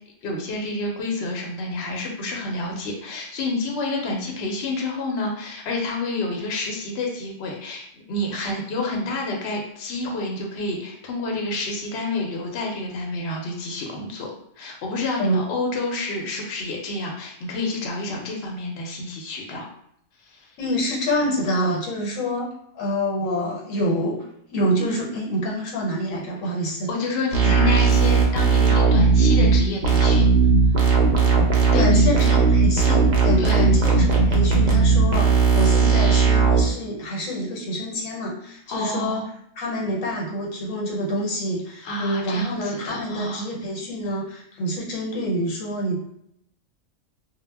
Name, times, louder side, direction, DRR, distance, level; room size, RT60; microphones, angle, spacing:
voice 1, 0.2-14.3 14.6-19.7 20.3-20.5 26.9-30.3 31.7-32.1 33.4-33.7 38.7-39.2 41.8-43.5, left 2 dB, 65° left, 0 dB, 0.8 m, -28 dB
voice 2, 20.6-26.9 27.4-27.5 31.7-39.2 39.6-46.0, equal, 90° left, -2 dB, 1.1 m, -27 dB
sound 1, 27.3-36.6, right 5 dB, 55° right, 0.5 m, -17 dB
2.1 x 2.1 x 3.2 m, 0.72 s
omnidirectional pair, 1.3 m